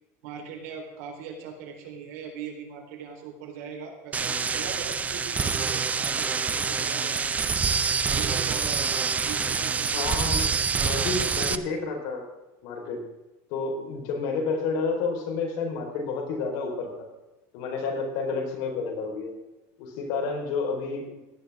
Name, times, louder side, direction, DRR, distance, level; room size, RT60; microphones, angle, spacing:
voice 1, 0.2-7.2 8.0-9.0 9.3-10.6 17.8-18.0, right 6 dB, 80° right, 1 dB, 3.8 m, -40 dB
sound 1, 4.1-11.6, right 5 dB, 20° right, 0.6 m, -26 dB
voice 2, 9.9-10.4 10.7-12.3 12.6-13.0 13.5-16.9 17.5-19.3 19.8-21.2, left 4 dB, 65° left, 1 dB, 4.3 m, -30 dB
17.0 x 11.0 x 3.6 m, 1.0 s
supercardioid pair, 145°, 8 cm